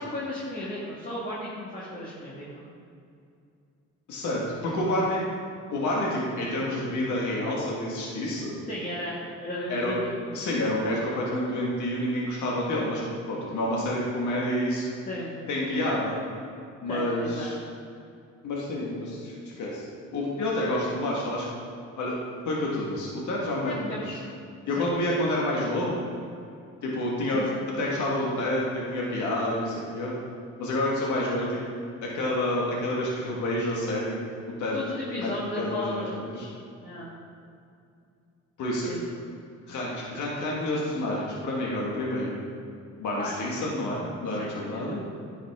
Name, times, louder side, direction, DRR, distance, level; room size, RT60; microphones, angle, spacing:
voice 1, 0.0-2.6 8.7-10.1 10.5-10.6 15.0-15.3 16.9-17.5 23.6-24.2 24.7-24.9 27.3-27.6 34.7-36.2 36.8-37.1 38.9-39.0 43.1-43.5 44.4-45.0, left 1 dB, 25° left, -7 dB, 1.8 m, -35 dB
voice 2, 4.1-5.2 5.7-8.5 9.7-9.9 10.3-14.8 15.5-16.2 16.8-17.5 18.4-19.8 20.1-21.4 22.0-22.2 22.4-24.2 24.7-26.0 26.8-27.4 27.8-30.1 30.6-31.6 32.0-34.2 34.6-34.8 35.1-35.3 35.6-36.5 38.6-38.9 39.7-42.4 43.0-45.0, left 1 dB, 75° left, -4 dB, 1.7 m, -28 dB
10.0 x 5.6 x 3.6 m, 2.5 s
cardioid pair, 90°, 30 cm